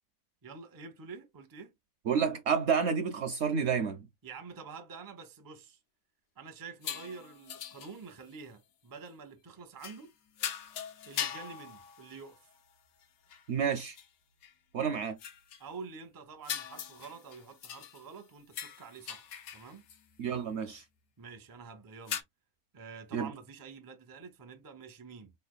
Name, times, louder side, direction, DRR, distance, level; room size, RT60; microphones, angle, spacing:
voice 1, 0.4-1.7 4.2-5.8 6.4-10.1 11.0-12.4 15.6-19.8 21.2-22.2 22.7-25.3, right 5 dB, 25° right, 0.4 m, -48 dB
voice 2, 2.1-4.1 13.5-14.0 14.7-15.2 20.2-20.8 23.1-23.3, right 6 dB, 65° right, 0.7 m, -30 dB
sound 1, 6.8-8.4 9.8-10.1 10.4-12.6 13.0-13.1 13.3-13.5 14.0-14.1 14.4-14.5 15.2-15.6 16.4-18.2 18.5-20.0 22.1-22.2, left 9 dB, 75° left, 1.1 m, -41 dB
4.1 x 3.3 x 2.3 m
omnidirectional pair, 1.5 m